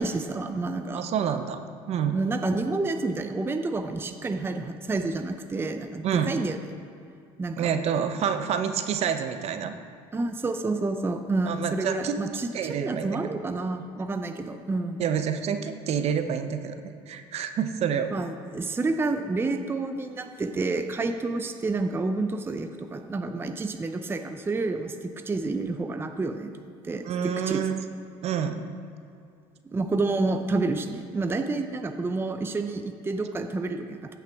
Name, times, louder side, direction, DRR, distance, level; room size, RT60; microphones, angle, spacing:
voice 1, 0.0-1.0 2.1-6.6 7.4-7.7 10.1-15.0 18.1-27.6 29.6-34.1, right 3 dB, 15° right, 7 dB, 0.5 m, -29 dB
voice 2, 0.9-2.1 6.0-6.3 7.6-9.7 11.5-12.2 12.5-13.4 15.0-18.1 27.0-27.8 28.2-28.6, right 8 dB, 50° right, 8 dB, 0.7 m, -28 dB
15.5 x 5.8 x 3.5 m, 2.5 s
supercardioid pair, 95°, 13 cm